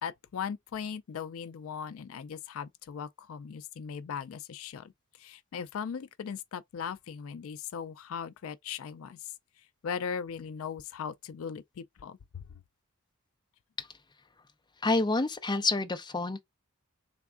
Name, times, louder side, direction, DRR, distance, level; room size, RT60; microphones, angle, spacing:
voice 1, 0.0-12.5, left 7 dB, 65° left, 0.4 m, -39 dB
voice 2, 14.8-16.4, left 3 dB, 20° left, 0.6 m, -28 dB
3.5 x 3.4 x 3.5 m
head